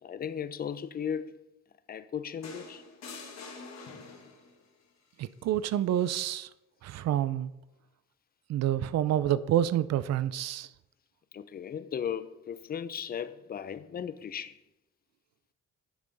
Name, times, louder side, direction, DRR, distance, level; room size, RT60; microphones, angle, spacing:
voice 1, 0.0-1.4 1.9-2.8 11.3-14.6, left 8 dB, 30° left, 0.4 m, -36 dB
sound 1, 2.4-4.6 6.0-6.2, left 4 dB, 60° left, 1.3 m, -45 dB
voice 2, 5.2-6.5 6.8-7.5 8.5-10.7, right 11 dB, 60° right, 0.4 m, -28 dB
9.3 x 3.6 x 3.9 m
cardioid pair, 90°, 30 cm